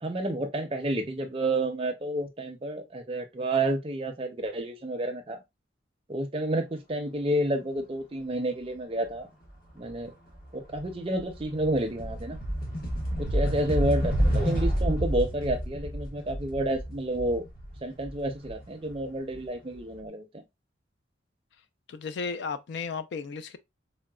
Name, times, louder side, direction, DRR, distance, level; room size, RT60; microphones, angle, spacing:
voice 1, 0.0-5.4 6.1-9.3 9.8-10.1 10.5-12.4 13.2-17.4 17.8-20.4, right 1 dB, 30° right, 0.5 m, -30 dB
sound 1, 9.8-10.1 10.4-19.3, equal, 50° left, 1.0 m, -30 dB
voice 2, 21.9-23.6, left 5 dB, 65° left, 0.3 m, -34 dB
3.9 x 2.1 x 2.2 m
head